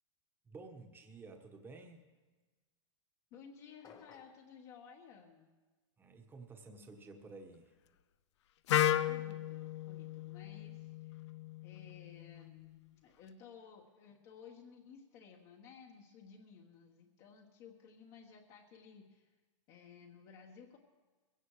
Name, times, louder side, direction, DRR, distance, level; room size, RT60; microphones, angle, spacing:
voice 1, 0.4-2.0 6.0-7.7, right 3 dB, 15° right, 4 dB, 1.3 m, -52 dB
voice 2, 3.3-5.6 8.7-11.2 11.6-19.3 19.7-20.8, left 6 dB, 40° left, 0 dB, 1.5 m, -56 dB
sound 1, 3.8-4.5, left 6 dB, 25° left, 1.0 m, -57 dB
Wind instrument woodwind instrument, 8.7-12.6, left 12 dB, 65° left, 0.6 m, -35 dB
20.5 x 16.5 x 3.3 m, 1.3 s
hypercardioid pair, 140°, 16 cm